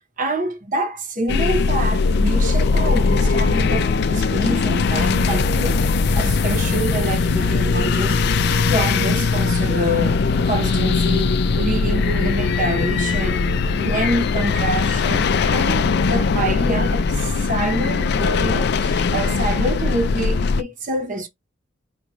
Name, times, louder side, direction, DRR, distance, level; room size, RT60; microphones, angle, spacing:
voice 1, 0.0-5.8 6.1-8.2 8.6-13.4 13.7-21.3, right 1 dB, 45° right, 1.0 m, -26 dB
sound 1, 1.3-20.6, left 4 dB, 60° left, 0.4 m, -20 dB
sound 2, 2.9-18.0, right 6 dB, 75° right, 1.2 m, -38 dB
4.7 x 2.5 x 3.0 m
head